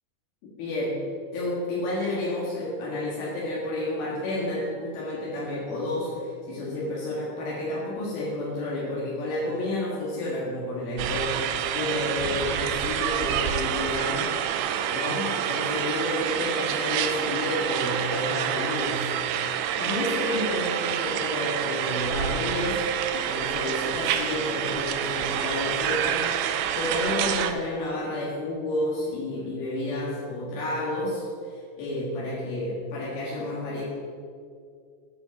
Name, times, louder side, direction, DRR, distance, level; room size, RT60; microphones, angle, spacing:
voice 1, 0.4-1.0 1.3-14.3 14.9-19.2 19.5-22.8 23.1-26.3 26.8-33.8, left 1 dB, 80° left, -7 dB, 3.7 m, -30 dB
sound 1, 11.0-27.5, right 9 dB, 85° right, 2.0 m, -28 dB
11.5 x 10.0 x 4.1 m, 2.2 s
omnidirectional pair, 4.2 m